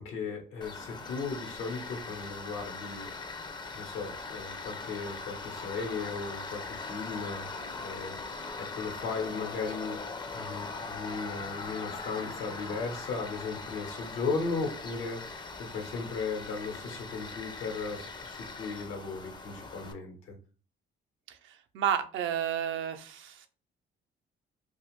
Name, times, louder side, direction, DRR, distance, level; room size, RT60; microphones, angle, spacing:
voice 1, 0.0-3.1 3.7-8.3 8.6-10.0 10.3-20.3, left 4 dB, 90° left, 2 dB, 1.0 m, -36 dB
Tools, 0.6-19.9, left 3 dB, 20° left, 0.4 m, -41 dB
voice 2, 21.3-23.5, right 9 dB, 80° right, 7 dB, 0.5 m, -32 dB
2.4 x 2.3 x 3.1 m, 0.37 s
cardioid pair, 90°, 20 cm